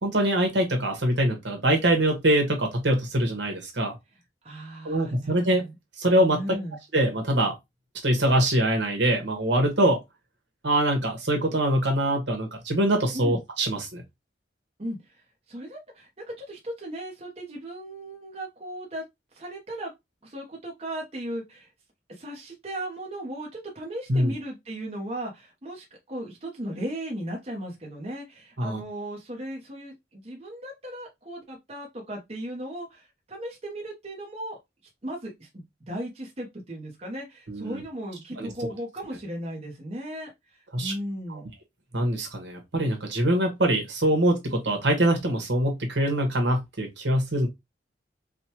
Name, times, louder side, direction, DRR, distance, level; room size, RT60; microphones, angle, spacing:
voice 1, 0.0-4.0 4.8-5.6 6.0-6.4 6.9-7.5 8.0-10.0 10.6-14.0 24.1-24.3 28.6-28.8 37.5-37.8 38.4-38.5 40.7-40.9 41.3-41.4 41.9-47.5, right 1 dB, 70° right, 1.4 m, -24 dB
voice 2, 4.4-5.7 6.3-6.8 13.1-13.4 14.8-19.0 19.3-19.9 20.2-21.7 22.1-34.6 35.0-41.5, right 1 dB, 35° right, 1.0 m, -36 dB
5.0 x 2.3 x 2.9 m
head